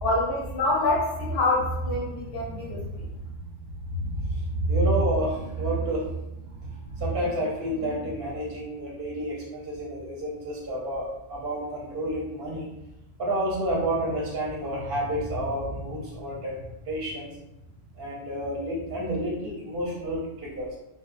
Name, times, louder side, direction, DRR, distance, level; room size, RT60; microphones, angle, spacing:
voice 1, 0.0-3.1, left 2 dB, 60° left, -3 dB, 0.6 m, -26 dB
voice 2, 2.2-2.8 3.8-12.7 13.2-16.6 16.9-17.3 18.0-20.8, right 1 dB, 55° right, -4 dB, 0.7 m, -29 dB
2.8 x 2.0 x 2.4 m, 0.91 s
omnidirectional pair, 1.3 m